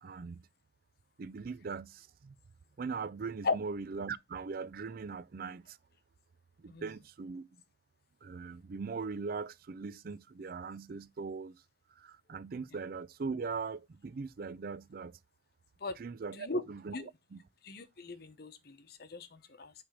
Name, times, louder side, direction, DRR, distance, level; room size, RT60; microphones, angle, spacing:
voice 1, 0.0-0.4 1.2-2.4 2.8-5.8 6.6-7.5 8.2-11.6 12.0-15.2 16.0-16.9 17.3-17.4, right 4 dB, 55° right, 0.4 m, -40 dB
voice 2, 17.6-19.7, left 3 dB, 60° left, 0.9 m, -37 dB
8.8 x 3.4 x 4.9 m
head